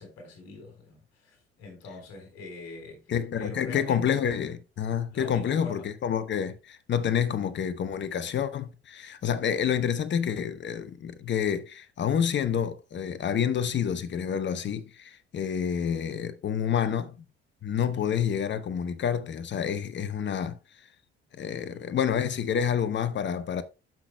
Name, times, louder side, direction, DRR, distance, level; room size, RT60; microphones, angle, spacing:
voice 1, 0.0-4.2 5.1-5.9 17.9-18.2 21.5-21.9, left 3 dB, 55° left, 3.7 m, -44 dB
voice 2, 3.1-17.2 17.6-20.6 21.4-23.6, left 8 dB, 35° left, 0.9 m, -28 dB
12.0 x 6.0 x 2.2 m
figure-of-eight pair, 50°, 31 cm